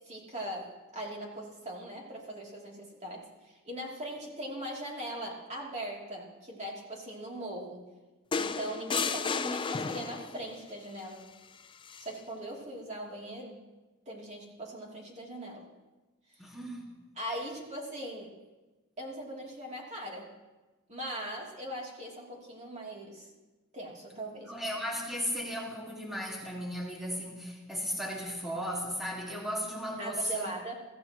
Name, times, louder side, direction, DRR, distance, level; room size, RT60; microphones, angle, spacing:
voice 1, 0.1-7.8 8.3-11.3 12.0-13.6 14.1-15.6 17.1-18.3 19.0-20.3 20.9-23.3 23.7-24.5 30.0-30.7, right 1 dB, 35° right, 2.9 m, -40 dB
sound 1, 8.3-10.5 11.9-12.1, left 5 dB, 25° left, 0.4 m, -33 dB
voice 2, 16.4-17.0 24.4-30.5, equal, ahead, 1.9 m, -36 dB
22.5 x 15.0 x 3.0 m
head